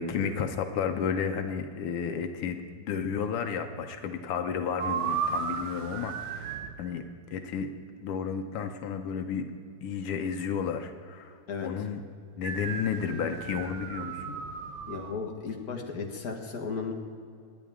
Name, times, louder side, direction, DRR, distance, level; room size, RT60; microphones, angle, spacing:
voice 1, 0.0-7.0 7.3-7.7 8.0-9.5 9.8-12.0 12.4-14.4, left 7 dB, 85° left, 6 dB, 1.8 m, -32 dB
sound 1, 4.8-6.8 12.4-15.1, right 6 dB, 85° right, 1.9 m, -34 dB
voice 2, 14.9-16.9, left 5 dB, 45° left, 1 dB, 1.9 m, -35 dB
25.5 x 10.0 x 3.6 m, 2.3 s
omnidirectional pair, 2.4 m